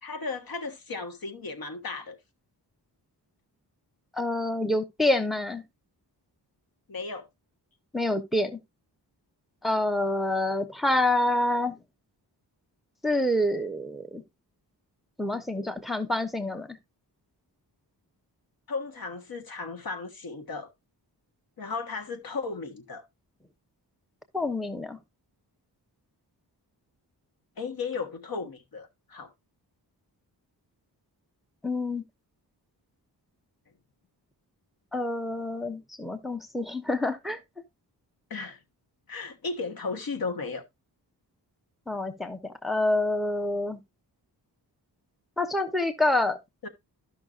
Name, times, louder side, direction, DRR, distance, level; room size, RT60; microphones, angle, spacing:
voice 1, 0.0-2.2 6.9-7.3 18.7-20.7 21.6-23.0 27.6-29.3 38.3-38.6 39.1-40.6 46.6-46.7, left 4 dB, 60° left, 1.4 m, -35 dB
voice 2, 4.1-5.6 7.9-8.5 9.6-11.8 13.0-14.2 15.2-16.8 24.3-25.0 31.6-32.0 34.9-37.4 41.9-43.8 45.4-46.4, left 1 dB, ahead, 0.9 m, -27 dB
13.0 x 5.8 x 2.5 m
wide cardioid pair, 95°, 41 cm